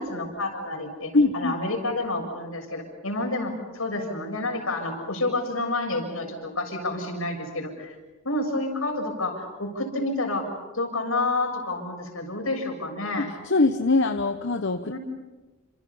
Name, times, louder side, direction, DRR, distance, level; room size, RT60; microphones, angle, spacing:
voice 1, 0.0-8.0 8.2-13.3 14.9-15.0, left 2 dB, 80° left, 2 dB, 6.9 m, -29 dB
voice 2, 1.1-1.5 13.2-15.0, left 3 dB, 60° left, 7 dB, 1.0 m, -23 dB
29.5 x 27.0 x 5.7 m, 1.2 s
head